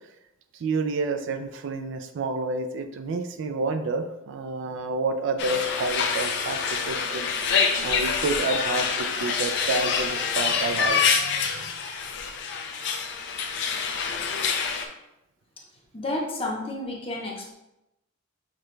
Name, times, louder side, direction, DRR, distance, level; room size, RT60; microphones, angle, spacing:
voice 1, 0.6-7.3 7.8-11.6, right 3 dB, 60° right, 7 dB, 0.4 m, -29 dB
sound 1, 5.4-14.9, left 6 dB, 60° left, 0.5 m, -26 dB
voice 2, 15.9-17.5, left 2 dB, 25° left, -1 dB, 0.7 m, -31 dB
5.8 x 2.2 x 3.1 m, 0.89 s
head